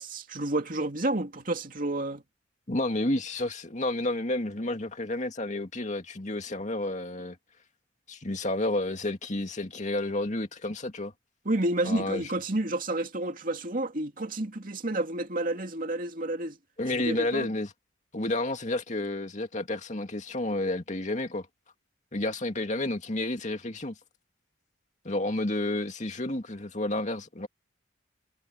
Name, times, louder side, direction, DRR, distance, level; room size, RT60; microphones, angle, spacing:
voice 1, 0.0-2.2 11.4-16.6 16.9-17.5, right 1 dB, 45° right, 2.5 m, -30 dB
voice 2, 2.7-7.4 8.1-11.1 11.8-12.2 16.8-17.7 18.1-21.5 22.1-23.9 25.0-27.5, left 2 dB, 40° left, 2.4 m, -30 dB
head